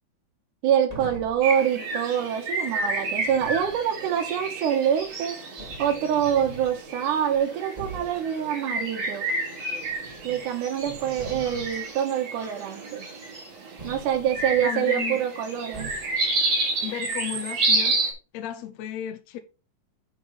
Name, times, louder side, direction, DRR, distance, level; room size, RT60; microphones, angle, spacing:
voice 1, 0.6-5.4 5.8-9.3 10.2-13.1 13.8-15.9, right 9 dB, 75° right, 2.6 m, -25 dB
sound 1, 0.9-1.5 3.1-3.8 5.0-5.1 5.6-6.8 7.3-7.4 7.8-8.2 9.8-10.5 10.8-11.9 13.8-14.7 15.7-16.3, right 2 dB, 15° right, 1.4 m, -42 dB
sound 2, 1.4-18.1, right 2 dB, 55° right, 3.3 m, -30 dB
voice 2, 14.6-15.2 16.8-18.0 18.3-19.4, left 11 dB, 75° left, 1.7 m, -34 dB
9.9 x 4.9 x 4.0 m
omnidirectional pair, 3.7 m